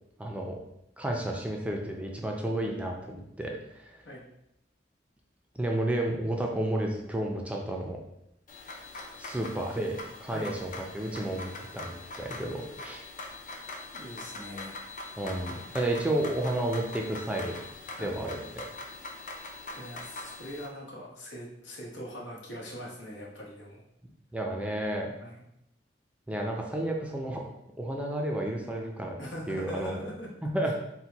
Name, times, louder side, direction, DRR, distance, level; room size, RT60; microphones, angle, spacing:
voice 1, 0.2-0.5 1.0-4.0 5.6-8.0 9.2-13.0 15.2-17.6 18.0-18.7 24.3-25.1 26.3-27.4 27.8-29.2 29.5-29.9 30.4-30.8, right 1 dB, 5° right, 0 dB, 0.4 m, -31 dB
sound 1, 8.5-20.7, left 2 dB, 45° left, 0.6 m, -43 dB
voice 2, 13.9-14.8 18.0-18.2 19.7-23.8 25.2-25.4 29.2-30.3, equal, 85° left, -3 dB, 1.2 m, -41 dB
4.4 x 2.2 x 3.9 m, 0.80 s
head